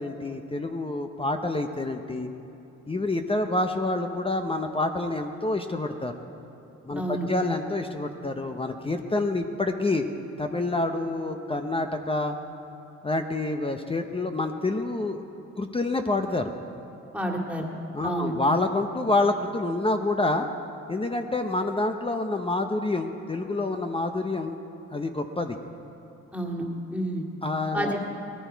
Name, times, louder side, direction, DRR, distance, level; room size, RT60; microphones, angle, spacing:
voice 1, 0.0-2.3 2.9-6.1 6.9-10.0 10.4-12.4 13.0-15.2 15.6-16.5 17.9-20.5 20.9-24.6 24.9-25.6 27.4-28.0, left 2 dB, 20° left, 6 dB, 0.8 m, -27 dB
voice 2, 6.9-7.3 17.1-17.7 18.0-18.3 26.3-26.7 26.9-27.2 27.7-28.0, right 1 dB, 5° right, 0 dB, 2.1 m, -29 dB
19.0 x 14.0 x 4.6 m, 2.9 s
cardioid pair, 90°, 30 cm